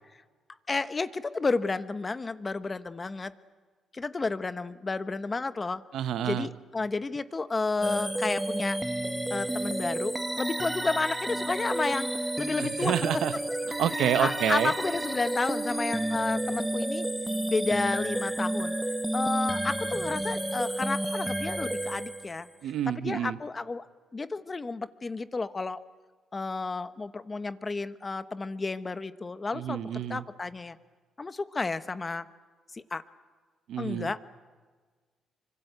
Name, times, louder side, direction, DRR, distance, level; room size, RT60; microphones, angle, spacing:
voice 1, 0.7-3.3 3.9-5.8 6.2-8.8 9.3-12.9 14.2-17.1 17.5-18.7 19.1-22.5 22.9-23.9 24.1-25.8 26.3-29.8 30.1-30.8 31.2-32.3 32.7-33.0 33.8-34.2, left 3 dB, 25° left, 13 dB, 1.1 m, -31 dB
voice 2, 5.9-6.5 12.6-13.3 13.8-14.7 22.6-23.4 29.5-30.2 33.7-34.1, right 10 dB, 80° right, 13 dB, 0.9 m, -28 dB
sound 1, 7.8-22.6, right 1 dB, 5° right, 1.2 m, -31 dB
26.0 x 25.0 x 8.1 m, 1.5 s
cardioid pair, 90°, 0 cm